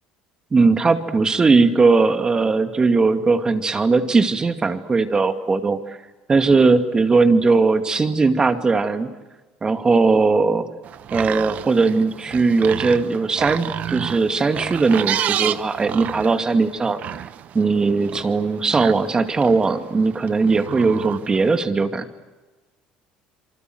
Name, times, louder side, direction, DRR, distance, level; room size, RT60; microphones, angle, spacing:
voice 1, 0.5-6.0 6.3-9.1 9.6-10.7 11.1-17.0 17.5-22.1, right 4 dB, 25° right, 8 dB, 2.4 m, -19 dB
sound 1, 10.8-21.6, right 10 dB, 50° right, 1.1 m, -30 dB
27.5 x 24.5 x 8.0 m, 1.2 s
supercardioid pair, 105°, 3 cm